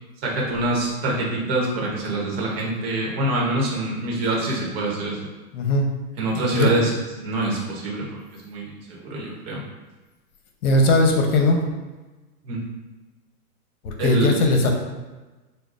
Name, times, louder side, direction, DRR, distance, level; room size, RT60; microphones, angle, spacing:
voice 1, 0.2-5.3 6.2-6.9 7.2-8.0 8.5-9.6 12.4-12.6 14.0-14.3, right 2 dB, 40° right, -3 dB, 1.0 m, -25 dB
voice 2, 5.5-5.9 6.5-6.7 10.6-11.6 13.8-14.7, left 2 dB, 70° left, 2 dB, 0.9 m, -19 dB
6.5 x 2.3 x 2.5 m, 1.2 s
hypercardioid pair, 150°, 45 cm